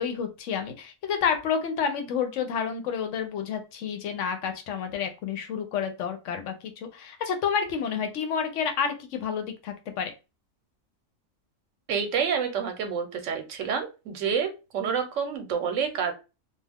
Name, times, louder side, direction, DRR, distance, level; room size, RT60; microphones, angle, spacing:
voice 1, 0.0-10.1, left 7 dB, 75° left, 6 dB, 0.9 m, -29 dB
voice 2, 11.9-16.1, right 6 dB, 75° right, 6 dB, 1.0 m, -28 dB
2.3 x 2.3 x 3.4 m, 0.29 s
omnidirectional pair, 1.3 m